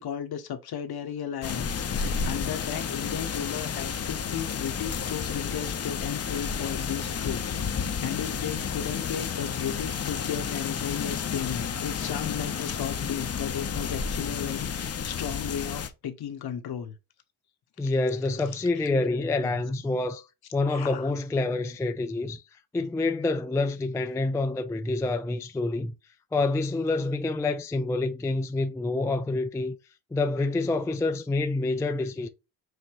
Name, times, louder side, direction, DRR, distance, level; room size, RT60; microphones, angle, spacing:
voice 1, 0.0-7.7 8.0-17.0 18.7-18.9 19.4-19.6 20.7-21.1, left 9 dB, 50° left, 1.0 m, -35 dB
sound 1, 1.4-15.9, left 6 dB, 30° left, 0.7 m, -31 dB
voice 2, 17.8-20.2 20.5-22.4 22.7-25.9 26.3-29.8 30.1-32.3, left 2 dB, 5° left, 0.3 m, -27 dB
6.4 x 2.6 x 2.9 m
supercardioid pair, 65°, 48 cm